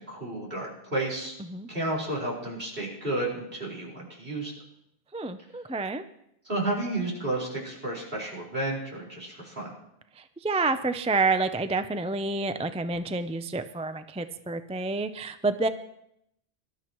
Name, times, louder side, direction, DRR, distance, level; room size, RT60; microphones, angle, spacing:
voice 1, 0.0-1.3 1.7-4.5 6.4-9.7, right 2 dB, 60° right, -4 dB, 5.1 m, -32 dB
voice 2, 5.1-6.0 10.2-15.7, right 3 dB, 10° right, 9 dB, 0.4 m, -28 dB
23.5 x 12.5 x 3.1 m, 0.77 s
omnidirectional pair, 1.1 m